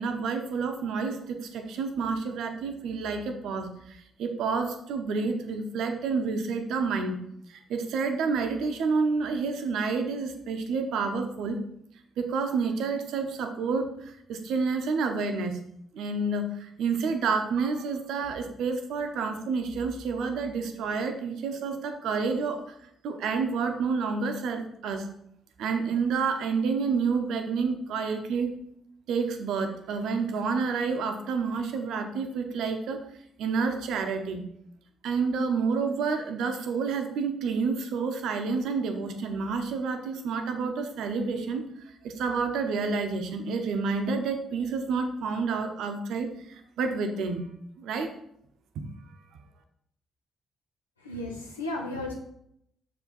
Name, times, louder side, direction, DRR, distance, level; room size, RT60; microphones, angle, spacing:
voice 1, 0.0-7.2 7.5-11.6 12.2-15.6 15.9-22.7 23.0-25.1 25.6-28.6 29.1-33.0 33.4-34.5 35.0-47.5 47.8-48.1 48.7-48.9, right 4 dB, 60° right, 6 dB, 0.8 m, -29 dB
voice 2, 51.0-52.1, left 2 dB, 85° left, 0 dB, 1.0 m, -34 dB
6.6 x 4.7 x 4.1 m, 0.73 s
figure-of-eight pair, 40°, 0 cm